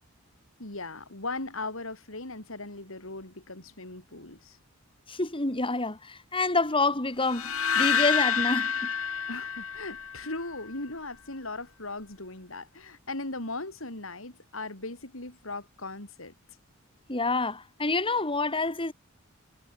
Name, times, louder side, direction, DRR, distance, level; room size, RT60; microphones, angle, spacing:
voice 1, 0.6-4.6 9.3-16.3, left 2 dB, 70° left, 4.6 m, -38 dB
voice 2, 5.1-8.9 17.1-18.9, left 3 dB, 25° left, 3.2 m, -28 dB
sound 1, 7.3-10.5, left 7 dB, 90° left, 4.6 m, -28 dB
head